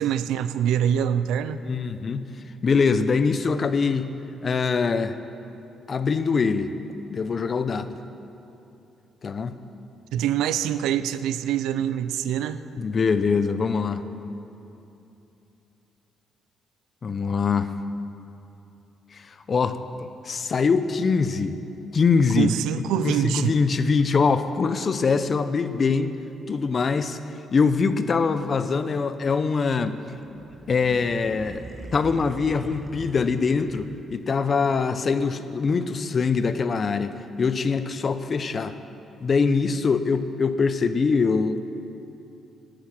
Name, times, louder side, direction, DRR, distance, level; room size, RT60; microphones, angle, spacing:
voice 1, 0.0-1.6 10.1-12.6 22.3-23.5, right 10 dB, 90° right, 13 dB, 0.5 m, -25 dB
voice 2, 1.6-2.3 2.6-4.1 4.4-5.1 5.9-6.7 7.1-8.0 9.2-9.5 12.8-14.0 17.0-17.7 19.1-21.6 21.9-26.2 26.5-27.2 27.5-30.0 30.7-31.6 31.9-38.7 39.2-41.6, left 5 dB, 45° left, 11 dB, 0.8 m, -23 dB
sound 1, 30.1-34.3, right 3 dB, 30° right, 0.7 m, -42 dB
18.0 x 10.0 x 6.1 m, 2.9 s
cardioid pair, 90°, 0 cm